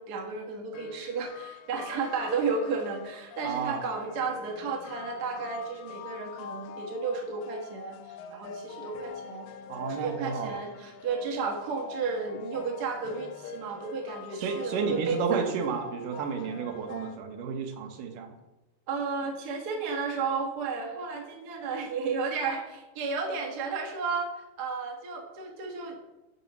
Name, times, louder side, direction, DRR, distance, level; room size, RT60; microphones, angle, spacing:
voice 1, 0.0-9.5 9.8-15.4 18.9-25.9, right 4 dB, 50° right, 0 dB, 1.2 m, -33 dB
sound 1, 0.7-17.2, left 7 dB, 75° left, 1.8 m, -45 dB
voice 2, 3.4-3.8 9.7-10.5 14.3-18.3, right 6 dB, 80° right, 4 dB, 2.5 m, -31 dB
12.0 x 6.3 x 3.0 m, 1.1 s
omnidirectional pair, 3.8 m